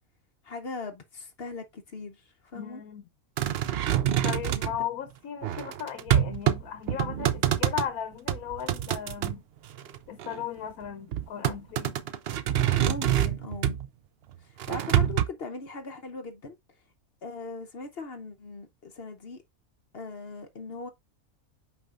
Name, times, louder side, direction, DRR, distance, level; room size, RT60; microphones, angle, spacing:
voice 1, 0.4-2.8 12.8-13.8 14.4-16.6 17.2-19.4 19.9-20.9, left 4 dB, 50° left, 0.9 m, -39 dB
voice 2, 2.5-3.0 4.2-9.4 10.1-11.9, left 9 dB, 75° left, 1.2 m, -36 dB
sound 1, 3.4-4.8 5.4-6.6 6.9-7.9 8.3-9.4 9.8-10.4 11.1-13.9 14.6-15.3, right 11 dB, 65° right, 0.6 m, -26 dB
8.4 x 5.3 x 2.4 m
omnidirectional pair, 1.5 m